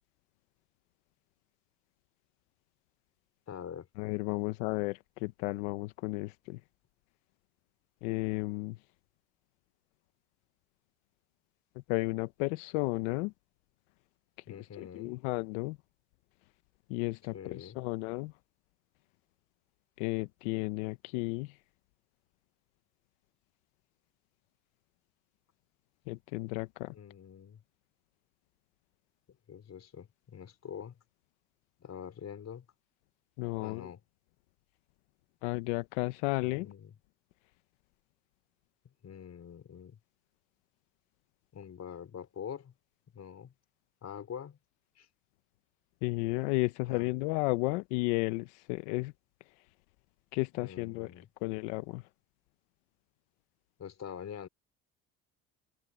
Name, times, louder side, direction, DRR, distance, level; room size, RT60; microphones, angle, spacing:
voice 1, 3.5-3.9 14.5-15.2 17.3-17.8 26.9-27.6 29.5-31.0 31.8-32.7 33.6-34.0 36.4-36.9 39.0-40.0 41.5-42.7 43.1-43.5 44.0-44.6 45.0-45.1 46.8-47.1 50.5-51.3 53.8-54.5, left 8 dB, 50° left, 4.6 m, -45 dB
voice 2, 4.0-6.6 8.0-8.8 11.9-13.3 14.8-15.8 16.9-18.3 20.0-21.5 26.1-26.9 33.4-33.9 35.4-36.7 46.0-49.1 50.3-51.1 51.4-52.0, left 23 dB, 90° left, 0.8 m, -33 dB
open air
supercardioid pair, 70°, 35 cm